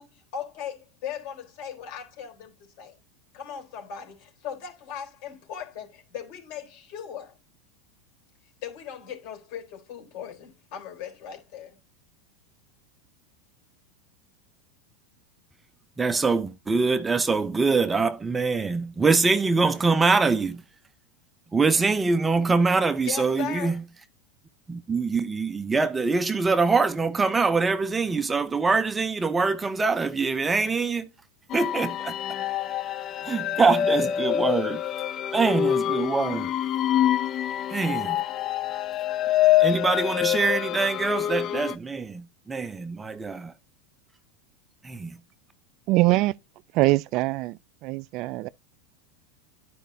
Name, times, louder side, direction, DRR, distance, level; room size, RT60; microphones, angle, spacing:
voice 1, 0.0-3.0 3.3-7.4 8.6-11.8 23.0-23.8, left 8 dB, 60° left, 3.9 m, -38 dB
voice 2, 16.0-20.6 21.5-23.8 24.7-31.1 31.5-32.1 33.2-34.8 35.3-36.5 37.7-38.2 39.6-43.5 44.8-45.2, right 4 dB, 15° right, 0.7 m, -24 dB
sound 1, 31.5-41.7, left 12 dB, 40° left, 0.4 m, -26 dB
voice 3, 45.9-46.3 46.7-48.5, right 19 dB, 50° right, 0.3 m, -23 dB
11.5 x 5.0 x 2.7 m
supercardioid pair, 120°, 0 cm